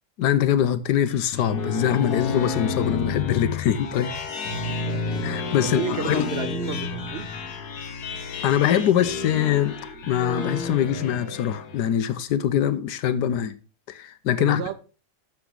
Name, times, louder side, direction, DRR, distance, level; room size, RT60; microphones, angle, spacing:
voice 1, 0.2-4.1 5.2-6.2 8.4-9.7 10.1-13.6 13.9-14.6, left 10 dB, 85° left, 1.3 m, -23 dB
sound 1, 1.1-11.9, left 4 dB, 70° left, 1.6 m, -31 dB
voice 2, 4.5-5.1 5.6-7.4 14.4-14.7, right 9 dB, 80° right, 0.5 m, -32 dB
8.7 x 7.2 x 3.8 m
omnidirectional pair, 1.8 m